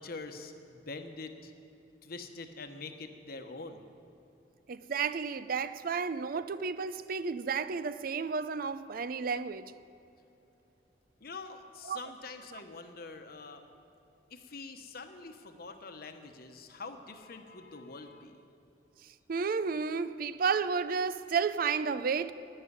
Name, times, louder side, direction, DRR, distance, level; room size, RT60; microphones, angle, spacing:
voice 1, 0.0-1.5 2.0-3.9 11.2-13.6 14.3-18.4, left 3 dB, 60° left, 1.1 m, -45 dB
voice 2, 4.7-9.7 11.8-12.0 12.5-12.6 19.3-22.3, right 5 dB, 55° right, 0.5 m, -32 dB
11.5 x 9.2 x 9.6 m
head